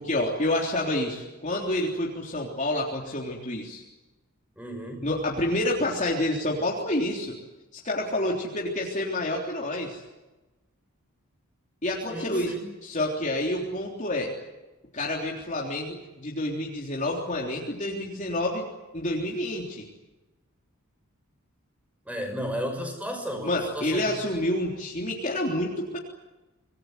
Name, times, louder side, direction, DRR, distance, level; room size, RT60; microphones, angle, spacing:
voice 1, 0.0-3.8 5.0-7.4 7.7-10.0 11.8-12.5 12.8-14.3 14.9-18.7 18.9-19.8 23.4-26.0, left 1 dB, 35° left, -2 dB, 3.6 m, -28 dB
voice 2, 4.6-5.0 12.1-12.7 22.1-24.2, equal, 5° right, 5 dB, 6.0 m, -34 dB
26.5 x 21.0 x 9.4 m, 1.1 s
head